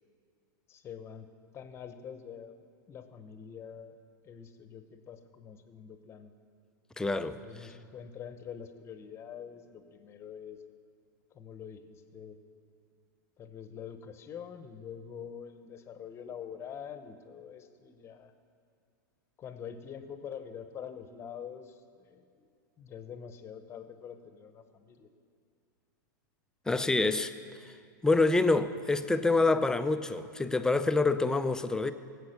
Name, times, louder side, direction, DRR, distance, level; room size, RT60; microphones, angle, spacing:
voice 1, 0.7-1.3 1.5-2.6 2.9-4.0 4.2-6.3 7.3-10.6 11.3-12.4 13.4-18.3 19.4-22.5 22.8-25.1, left 8 dB, 25° left, 0.9 m, -45 dB
voice 2, 7.0-7.7 26.7-27.3 27.6-27.7 28.0-31.9, left 3 dB, 5° left, 0.4 m, -27 dB
17.5 x 8.2 x 6.6 m
supercardioid pair, 135°, 11 cm